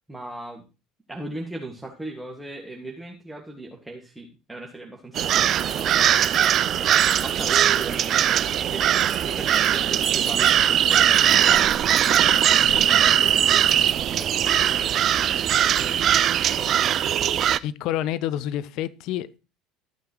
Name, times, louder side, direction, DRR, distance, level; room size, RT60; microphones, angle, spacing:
voice 1, 0.1-0.6 1.1-5.7 6.4-6.9 7.2-11.7 12.0-13.6 14.2-15.1 15.7-16.1 16.4-17.0, right 2 dB, 5° right, 2.0 m, -38 dB
sound 1, 5.2-17.6, right 10 dB, 40° right, 0.4 m, -20 dB
Keys jangling, 5.5-14.5, left 6 dB, 35° left, 1.9 m, -43 dB
voice 2, 17.6-19.4, left 12 dB, 55° left, 0.7 m, -28 dB
13.5 x 9.2 x 3.1 m
figure-of-eight pair, 65°, 0 cm